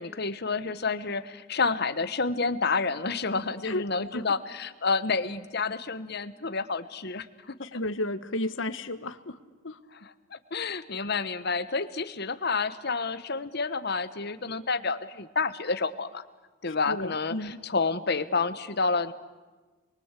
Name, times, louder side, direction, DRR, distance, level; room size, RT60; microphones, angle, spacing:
voice 1, 0.0-7.3 7.7-7.8 10.0-16.2 16.6-19.1, left 4 dB, 55° left, 11 dB, 1.3 m, -29 dB
voice 2, 7.6-9.4 9.6-9.8 16.9-17.6, left 1 dB, 70° left, 11 dB, 1.5 m, -32 dB
29.5 x 23.0 x 8.4 m, 1.3 s
head